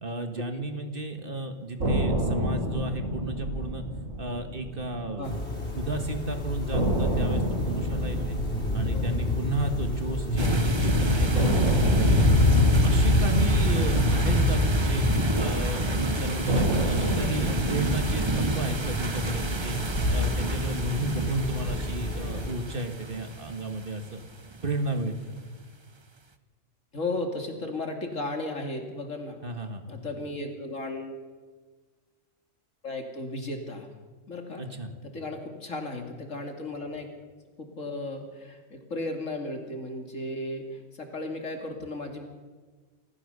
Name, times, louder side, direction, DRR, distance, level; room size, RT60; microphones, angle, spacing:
voice 1, 0.0-3.8 4.2-5.4 5.8-8.4 8.7-12.4 12.8-15.1 15.4-19.8 20.1-24.2 24.6-25.3 29.4-30.0 34.6-34.9, right 2 dB, 45° right, 6 dB, 1.9 m, -33 dB
sound 1, 1.8-5.9 6.2-6.3 6.7-10.8 11.3-15.7 16.5-20.8, right 1 dB, 80° right, 4.7 m, -30 dB
sound 2, 5.2-22.5, left 2 dB, 55° left, 4.9 m, -26 dB
sound 3, 10.4-24.9, right 3 dB, 25° right, 0.8 m, -31 dB
voice 2, 26.9-29.4 29.9-31.2 32.8-33.9 34.3-34.6 35.0-37.1 37.6-42.2, left 2 dB, 75° left, 4 dB, 2.9 m, -35 dB
26.0 x 14.5 x 6.8 m, 1.4 s
omnidirectional pair, 1.3 m